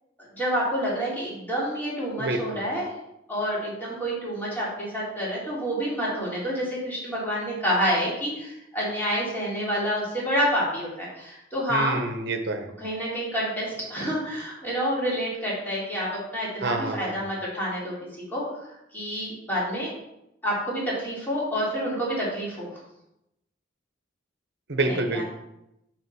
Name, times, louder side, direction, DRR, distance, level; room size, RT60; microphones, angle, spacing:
voice 1, 0.3-2.9 3.3-12.0 12.8-16.1 16.3-17.9 18.3-18.4 18.9-19.9 20.4-22.7 24.9-25.2, equal, 10° left, -7 dB, 3.3 m, -28 dB
voice 2, 2.2-2.6 11.7-12.7 16.6-17.2 24.7-25.2, right 2 dB, 65° right, 6 dB, 1.1 m, -27 dB
6.3 x 5.0 x 6.3 m, 0.85 s
head